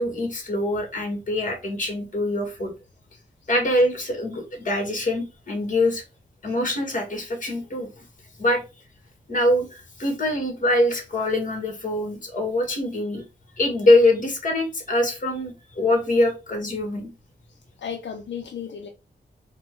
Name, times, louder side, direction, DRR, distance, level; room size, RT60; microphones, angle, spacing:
voice 1, 0.0-2.7 3.5-6.0 6.4-8.0 8.4-8.6 9.3-13.2 13.6-17.1, left 1 dB, 45° left, 1.6 m, -23 dB
voice 2, 17.5-18.9, left 7 dB, 80° left, 0.6 m, -35 dB
4.4 x 2.2 x 4.5 m
wide cardioid pair, 125°, 19 cm